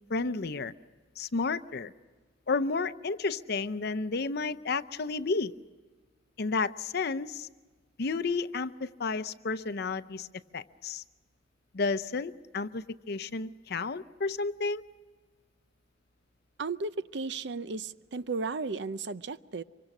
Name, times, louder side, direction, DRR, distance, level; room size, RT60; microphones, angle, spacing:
voice 1, 0.1-0.7 1.2-1.9 2.5-5.5 6.4-7.5 8.0-10.3 10.5-11.0 11.7-14.8, left 4 dB, 60° left, 13 dB, 0.7 m, -31 dB
voice 2, 16.6-19.6, right 4 dB, 65° right, 14 dB, 0.6 m, -34 dB
25.5 x 24.0 x 6.1 m, 1.4 s
head